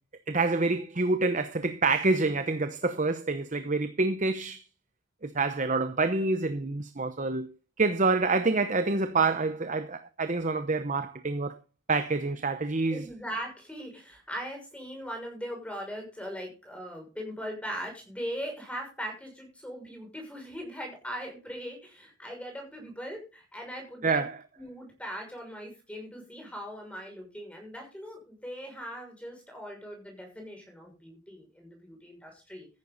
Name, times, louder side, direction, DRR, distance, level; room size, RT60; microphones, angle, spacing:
voice 1, 0.3-4.6 5.2-7.5 7.8-11.6 11.9-13.0 24.0-24.4, right 3 dB, 35° right, 0.8 m, -27 dB
voice 2, 12.9-24.2 24.6-32.7, equal, 5° left, 6.2 m, -40 dB
14.5 x 10.5 x 4.0 m
head